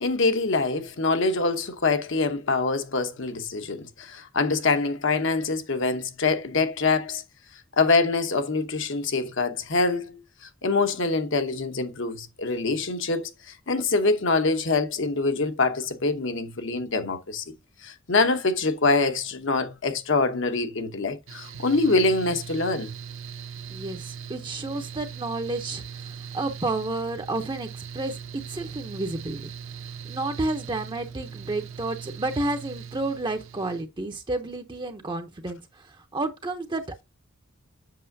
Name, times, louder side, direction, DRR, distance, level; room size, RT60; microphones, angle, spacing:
voice 1, 0.0-7.2 7.8-10.2 10.6-13.3 13.7-17.4 17.8-22.9, left 3 dB, 60° left, 0.9 m, -24 dB
Mechanical fan, 21.3-33.8, right 7 dB, 75° right, 1.0 m, -40 dB
voice 2, 23.7-27.7 27.9-29.5 30.0-37.1, right 2 dB, 25° right, 0.7 m, -31 dB
7.6 x 6.1 x 2.7 m
head